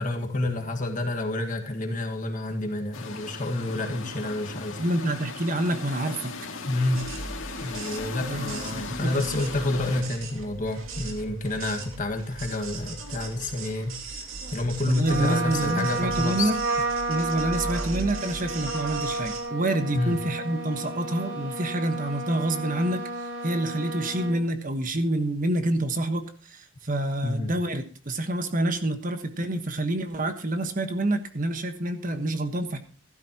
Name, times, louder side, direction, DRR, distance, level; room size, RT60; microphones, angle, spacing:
voice 1, 0.0-4.8 6.7-7.1 7.6-16.5 19.9-20.2 27.2-27.5, left 2 dB, 40° left, 4 dB, 1.7 m, -29 dB
sound 1, 2.9-10.0, left 4 dB, 75° left, 2.3 m, -37 dB
voice 2, 4.8-6.4 8.3-9.2 14.9-16.6 17.1-32.8, right 1 dB, 40° right, 8 dB, 1.3 m, -27 dB
sound 2, 6.9-19.4, right 3 dB, 80° right, 2.5 m, -38 dB
Trumpet, 15.0-24.4, right 2 dB, 60° right, 5.1 m, -32 dB
15.5 x 12.5 x 2.9 m, 0.40 s
head